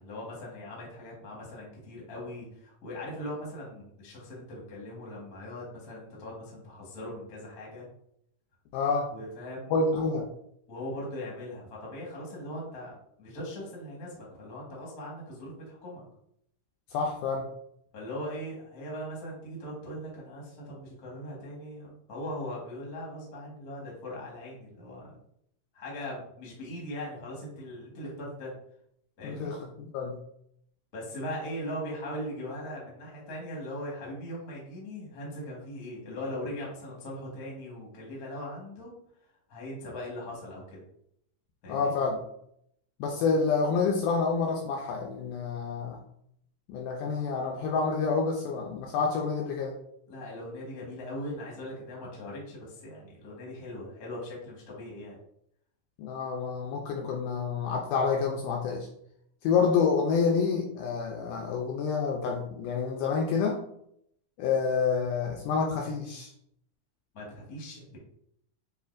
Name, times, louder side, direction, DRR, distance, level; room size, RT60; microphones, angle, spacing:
voice 1, 0.0-7.9 9.1-10.1 10.7-16.0 17.9-25.1 25.7-28.5 29.2-29.5 30.9-38.9 39.5-40.8 41.6-41.9 50.1-55.2 67.1-68.0, equal, 55° left, -4 dB, 1.0 m, -40 dB
voice 2, 8.7-9.1 9.7-10.3 16.9-17.5 29.2-30.2 41.7-42.2 43.0-46.0 46.7-49.8 56.0-58.9 59.4-63.6 64.4-66.3, left 5 dB, 80° left, 1 dB, 1.9 m, -28 dB
7.0 x 2.4 x 2.5 m, 0.72 s
omnidirectional pair, 4.0 m